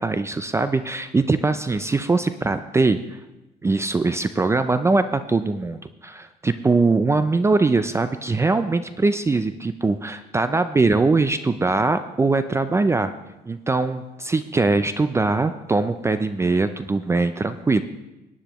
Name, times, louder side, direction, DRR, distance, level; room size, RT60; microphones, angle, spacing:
voice 1, 0.0-3.2 3.6-13.1 13.5-17.8, right 3 dB, 15° right, 11 dB, 0.4 m, -21 dB
18.0 x 9.7 x 3.0 m, 1.0 s
cardioid pair, 110°, 17 cm